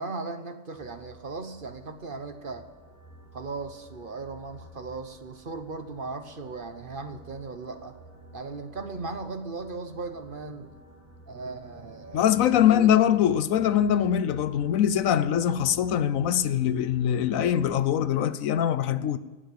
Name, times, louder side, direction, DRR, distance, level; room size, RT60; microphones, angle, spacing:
voice 1, 0.0-2.7 3.3-8.0 8.3-10.7 11.3-12.9, right 3 dB, 45° right, 1.1 m, -37 dB
sound 1, 0.7-17.8, equal, 10° right, 2.4 m, -51 dB
voice 2, 12.1-19.2, left 10 dB, 75° left, 1.1 m, -23 dB
18.0 x 7.4 x 8.6 m
omnidirectional pair, 1.4 m